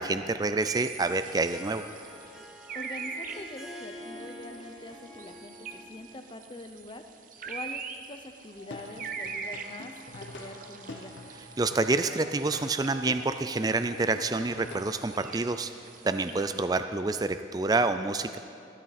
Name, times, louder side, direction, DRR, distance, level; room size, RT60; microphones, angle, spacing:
voice 1, 0.0-1.9 11.6-15.7 16.0-18.4, right 3 dB, 20° right, 10 dB, 0.3 m, -28 dB
sound 1, 0.6-16.6, right 6 dB, 45° right, 0.7 m, -43 dB
Harp, 0.9-6.2, equal, 5° right, 1.7 m, -46 dB
voice 2, 2.7-7.0 7.4-11.2 16.3-16.4, left 2 dB, 25° left, 6 dB, 0.7 m, -44 dB
Plucked string instrument, 8.5-15.0, left 2 dB, 75° left, 1.1 m, -46 dB
15.0 x 12.5 x 4.2 m, 2.5 s
head